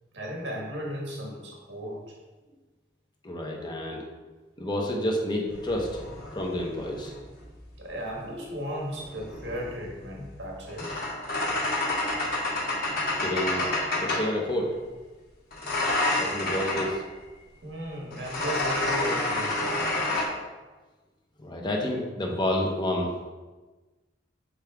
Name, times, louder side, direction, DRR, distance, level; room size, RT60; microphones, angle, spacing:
voice 1, 0.1-2.1 7.8-10.9 17.6-19.8, equal, 80° right, -2 dB, 1.6 m, -35 dB
voice 2, 3.2-4.1 4.6-6.0 6.3-7.1 13.2-13.7 14.0-14.7 16.2-17.0 21.4-23.1, left 1 dB, 25° left, 0 dB, 1.1 m, -29 dB
sound 1, 5.5-7.6 8.8-14.4 15.5-17.0 18.1-20.2, left 2 dB, 55° left, 1.5 m, -29 dB
7.5 x 4.8 x 3.7 m, 1.3 s
head